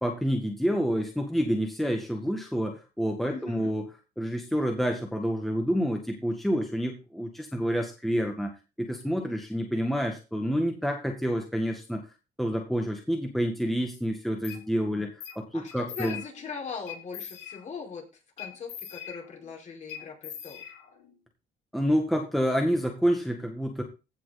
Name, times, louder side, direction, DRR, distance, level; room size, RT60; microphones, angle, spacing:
voice 1, 0.0-3.9 4.2-8.5 8.8-12.0 12.4-16.2 21.7-23.8, equal, ahead, 2 dB, 1.8 m, -28 dB
voice 2, 3.3-3.7 14.8-15.1 15.5-18.1 18.4-20.6, left 5 dB, 45° left, 1 dB, 5.0 m, -40 dB
sound 1, 14.4-14.6 15.2-15.4 15.7-16.5 16.9-17.9 18.4-19.5 19.9-21.1, left 9 dB, 80° left, 3.4 m, -42 dB
16.0 x 6.2 x 4.2 m, 0.29 s
cardioid pair, 110°, 17 cm